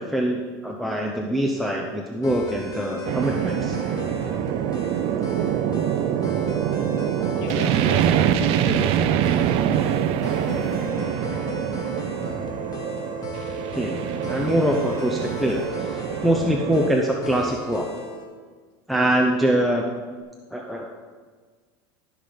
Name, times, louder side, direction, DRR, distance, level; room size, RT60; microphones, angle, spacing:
voice 1, 0.0-3.8 13.8-14.0 14.3-15.6 16.2-17.9 18.9-19.9 20.5-21.0, right 1 dB, ahead, -1 dB, 0.8 m, -23 dB
sound 1, 2.2-18.3, left 2 dB, 35° left, 1.9 m, -36 dB
sound 2, 3.0-16.9, right 10 dB, 55° right, 0.6 m, -25 dB
voice 2, 7.2-10.9, left 3 dB, 70° left, 0 dB, 2.5 m, -36 dB
14.0 x 5.9 x 5.2 m, 1.5 s
supercardioid pair, 135°, 12 cm